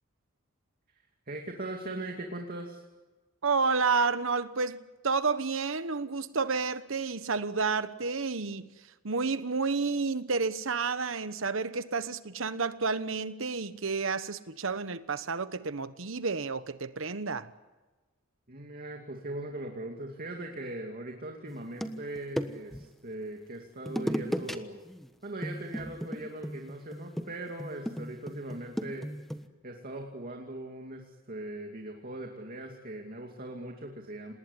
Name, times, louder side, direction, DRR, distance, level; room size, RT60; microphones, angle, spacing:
voice 1, 1.3-2.8 18.5-24.8 25.2-29.1 29.6-34.3, right 1 dB, 45° right, 2.5 m, -40 dB
voice 2, 3.4-8.8 9.0-17.5, right 4 dB, 70° right, 1.2 m, -30 dB
sound 1, 21.5-22.9 23.9-24.6 24.9-25.1 25.4-29.5, equal, ahead, 1.3 m, -35 dB
28.0 x 19.5 x 9.9 m
head